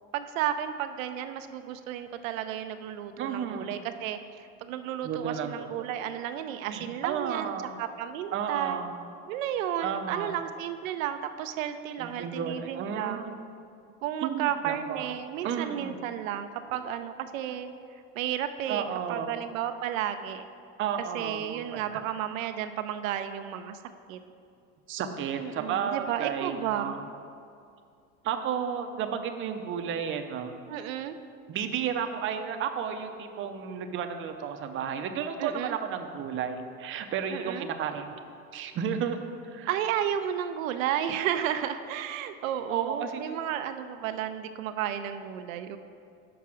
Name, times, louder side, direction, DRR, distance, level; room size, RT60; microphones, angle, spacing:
voice 1, 0.1-4.2 4.6-7.5 7.8-8.8 9.3-13.3 14.0-17.7 18.2-18.8 19.1-20.4 21.1-23.8 24.1-24.2 25.3-26.9 30.7-31.2 35.4-35.8 37.3-37.7 39.7-45.8, right 10 dB, 90° right, 9 dB, 0.5 m, -32 dB
voice 2, 3.2-3.7 5.0-5.9 6.7-7.8 8.3-8.9 9.8-10.3 12.0-13.3 14.2-15.2 15.4-16.0 18.7-19.3 20.8-22.0 24.9-27.0 28.2-30.5 31.5-38.2 38.5-39.2 39.5-39.7 42.7-43.3, right 7 dB, 30° right, 6 dB, 0.5 m, -32 dB
6.0 x 4.7 x 6.1 m, 2.4 s
supercardioid pair, 110°, 39 cm